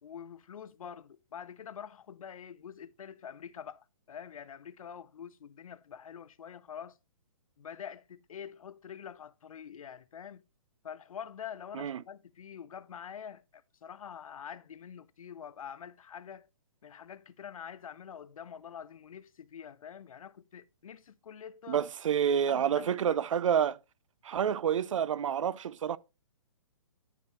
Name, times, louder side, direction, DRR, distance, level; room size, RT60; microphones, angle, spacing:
voice 1, 0.0-7.0 7.6-10.4 10.8-16.5 16.8-21.8 22.5-23.2, left 8 dB, 75° left, 0.7 m, -46 dB
voice 2, 21.7-23.8 24.2-26.0, right 8 dB, 65° right, 0.5 m, -28 dB
11.0 x 5.8 x 3.1 m
hypercardioid pair, 165°, 18 cm